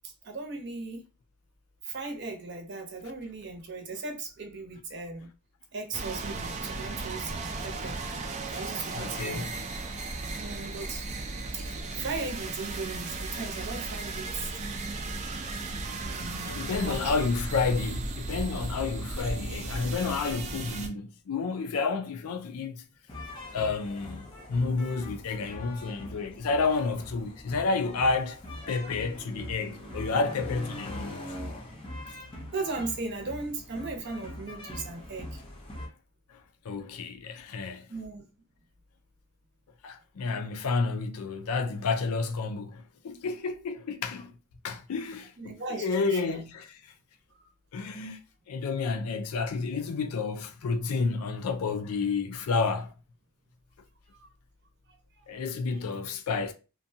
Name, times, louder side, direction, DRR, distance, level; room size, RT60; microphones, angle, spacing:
voice 1, 0.0-1.0 1.8-5.3 5.7-8.0 8.5-9.4 10.4-11.0 11.5-11.6 11.9-14.5 15.8-17.3 32.5-35.4 37.9-38.2 45.4-46.4 47.3-47.5 54.2-54.3 55.2-55.4, right 3 dB, 50° right, 0.7 m, -37 dB
sound 1, 5.9-20.9, right 3 dB, 30° right, 0.3 m, -35 dB
voice 2, 8.9-9.5 16.4-22.8 23.5-28.4 28.7-31.2 36.3-37.9 39.8-44.3 44.6-46.7 47.7-48.2 48.5-52.9 55.3-56.5, left 4 dB, 80° left, 0.4 m, -30 dB
sound 2, 23.1-35.9, left 1 dB, 25° left, 0.5 m, -42 dB
2.5 x 2.2 x 2.6 m
head